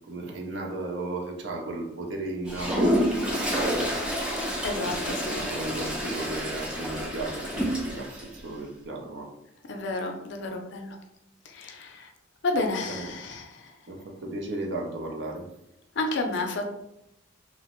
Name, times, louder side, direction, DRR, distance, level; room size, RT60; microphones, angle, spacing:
voice 1, 0.1-3.9 4.7-9.3 12.9-13.1 13.9-15.5, right 2 dB, 60° right, 1 dB, 0.5 m, -35 dB
Toilet flush, 2.5-8.3, equal, 5° right, 0.3 m, -29 dB
voice 2, 4.6-5.4 9.7-11.0 11.4-12.1 12.4-13.7 16.0-16.6, left 2 dB, 60° left, 3 dB, 0.4 m, -31 dB
2.8 x 2.0 x 2.9 m, 0.82 s
head